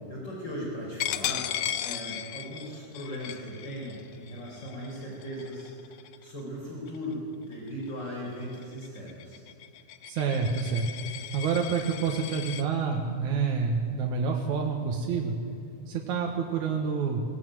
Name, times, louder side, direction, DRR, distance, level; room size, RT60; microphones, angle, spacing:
voice 1, 0.1-1.5 1.8-9.4, equal, 35° left, -3 dB, 5.6 m, -38 dB
Coin (dropping), 1.0-6.4 6.9-7.1 7.5-12.6, left 11 dB, 70° left, 1.7 m, -37 dB
voice 2, 10.1-10.9 11.3-15.3 15.9-17.2, right 5 dB, 80° right, 0 dB, 3.0 m, -28 dB
22.5 x 18.0 x 9.3 m, 2.5 s
omnidirectional pair, 3.4 m